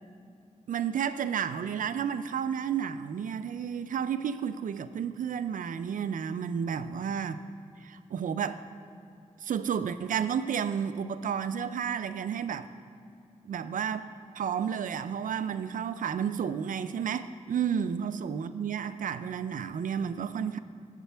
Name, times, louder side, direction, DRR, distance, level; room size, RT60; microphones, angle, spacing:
voice 1, 0.7-7.4 7.8-8.6 9.4-12.7 13.5-14.1 14.4-20.6, right 7 dB, 90° right, 12 dB, 0.4 m, -31 dB
15.5 x 7.5 x 3.4 m, 2.5 s
wide cardioid pair, 80°, 13 cm